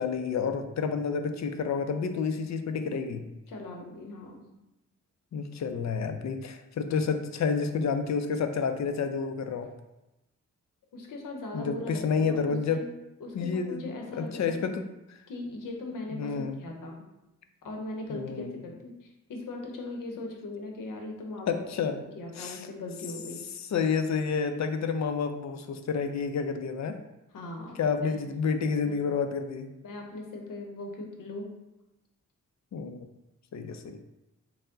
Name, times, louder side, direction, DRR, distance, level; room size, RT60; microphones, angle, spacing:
voice 1, 0.0-3.2 5.3-9.7 11.5-12.9 13.3-14.8 16.1-16.6 18.1-18.5 21.5-22.0 22.4-22.7 23.6-27.0 27.8-29.7 32.7-33.0 33.5-34.0, left 5 dB, 60° left, 8 dB, 0.4 m, -29 dB
voice 2, 3.5-4.4 10.9-12.9 13.2-14.7 15.3-17.0 17.6-21.6 22.1-23.4 27.3-28.2 28.8-29.0 29.8-31.5, left 2 dB, 80° left, 2 dB, 0.8 m, -39 dB
4.4 x 2.1 x 3.7 m, 0.95 s
wide cardioid pair, 90°, 32 cm